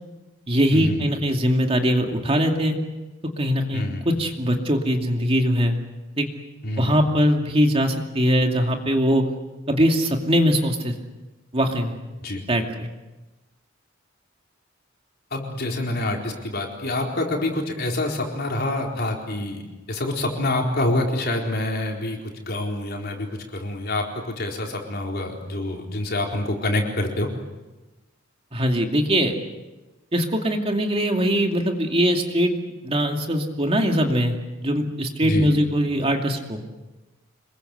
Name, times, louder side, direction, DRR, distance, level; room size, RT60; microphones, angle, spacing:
voice 1, 0.5-2.8 3.4-5.8 6.2-6.3 6.8-9.2 9.7-10.9 11.5-11.9 12.5-12.9 28.5-29.3 30.1-32.5 32.8-34.4 34.6-36.6, equal, 30° right, 3 dB, 2.5 m, -21 dB
voice 2, 6.6-7.0 12.2-12.4 15.3-19.6 19.9-27.3 35.2-35.5, left 1 dB, 50° left, 0 dB, 4.4 m, -26 dB
27.5 x 22.0 x 8.0 m, 1.1 s
head